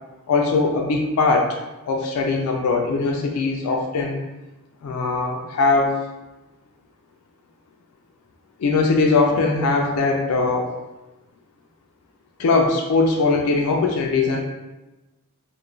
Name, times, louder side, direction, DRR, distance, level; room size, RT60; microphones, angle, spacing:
voice 1, 0.3-1.5 1.9-4.2 4.8-6.0 8.6-10.7 12.4-14.4, left 3 dB, 75° left, 1 dB, 0.3 m, -20 dB
2.4 x 2.1 x 3.0 m, 1.1 s
head